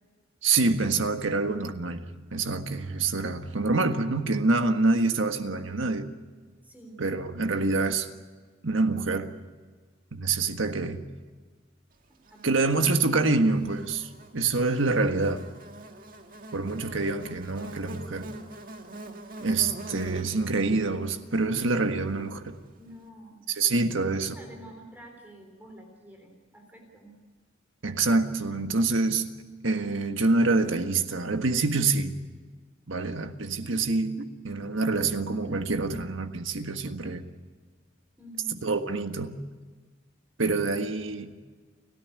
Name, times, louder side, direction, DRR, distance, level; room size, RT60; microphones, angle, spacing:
voice 1, 0.4-6.1 7.0-8.1 8.6-9.3 10.1-11.0 12.4-15.4 16.5-18.3 19.4-22.6 23.5-24.3 27.8-29.3 29.6-32.2 32.9-37.2 38.6-39.4 40.4-41.3, right 3 dB, 75° right, 7 dB, 1.6 m, -26 dB
voice 2, 6.6-7.0 12.3-12.9 22.8-27.2 38.2-38.7, right 1 dB, 10° right, 2 dB, 3.7 m, -48 dB
Buzz, 12.3-22.7, right 1 dB, 45° right, 1.7 m, -45 dB
30.0 x 13.5 x 9.5 m, 1.4 s
head